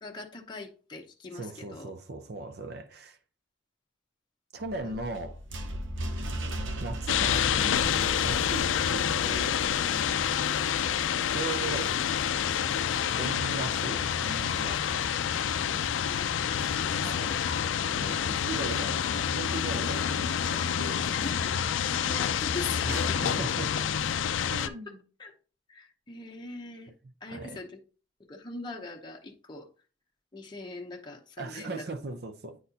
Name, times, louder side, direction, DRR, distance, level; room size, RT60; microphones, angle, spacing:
voice 1, 0.0-1.9 4.8-5.0 16.1-17.4 17.9-18.2 20.7-21.5 21.9-23.2 24.7-24.9 25.2-25.3 25.7-26.9 27.2-27.8 28.3-29.7 30.3-31.8, left 3 dB, 25° left, 0.7 m, -42 dB
voice 2, 1.3-3.2 4.5-5.4 6.8-9.6 11.3-11.9 13.2-15.2 15.6-15.9 17.0-17.4 17.9-21.1 22.8-23.7 24.5-25.0 27.3-27.6 31.4-32.6, right 3 dB, 55° right, 0.6 m, -38 dB
sound 1, 4.6-9.7, right 1 dB, 80° right, 0.8 m, -37 dB
sound 2, 7.1-24.7, left 8 dB, 80° left, 0.4 m, -28 dB
9.2 x 4.2 x 2.7 m
head